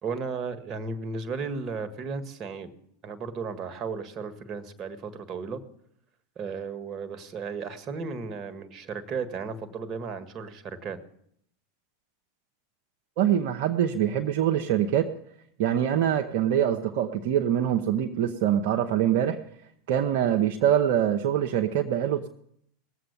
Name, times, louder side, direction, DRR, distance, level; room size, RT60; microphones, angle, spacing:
voice 1, 0.0-2.7 3.0-5.6 6.3-11.0, right 5 dB, 40° right, 9 dB, 1.6 m, -34 dB
voice 2, 13.2-15.1 15.6-19.4 19.9-22.3, right 10 dB, 60° right, 3 dB, 0.8 m, -24 dB
19.0 x 7.8 x 7.0 m, 0.69 s
hypercardioid pair, 90°, 0 cm